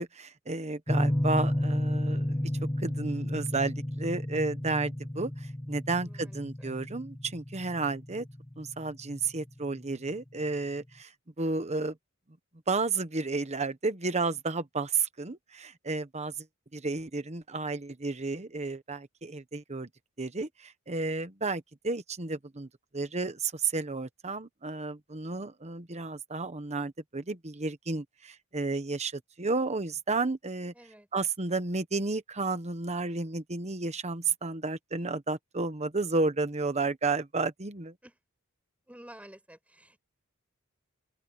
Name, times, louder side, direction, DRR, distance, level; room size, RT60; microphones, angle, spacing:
voice 1, 0.0-2.5 2.8-8.2 8.6-11.1 11.4-11.9 12.7-16.3 16.7-19.9 20.2-22.7 22.9-30.7 31.1-37.9, right 3 dB, 30° right, 1.2 m, -32 dB
sound 1, 0.9-9.6, left 1 dB, 15° left, 1.2 m, -32 dB
voice 2, 6.0-6.7 30.7-31.1 38.0-38.2 38.9-40.0, right 1 dB, 5° right, 7.3 m, -52 dB
head